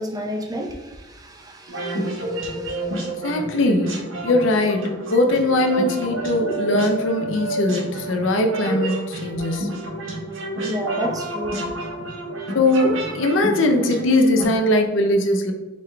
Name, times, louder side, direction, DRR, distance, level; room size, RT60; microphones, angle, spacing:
voice 1, 0.0-3.0 10.6-11.6, equal, 20° right, 0 dB, 0.5 m, -31 dB
sound 1, 1.7-14.4, right 1 dB, 75° right, 1.2 m, -29 dB
voice 2, 2.9-4.0 4.2-9.7 12.5-15.5, left 1 dB, 65° left, 4 dB, 0.5 m, -20 dB
4.8 x 3.6 x 2.2 m, 1.1 s
head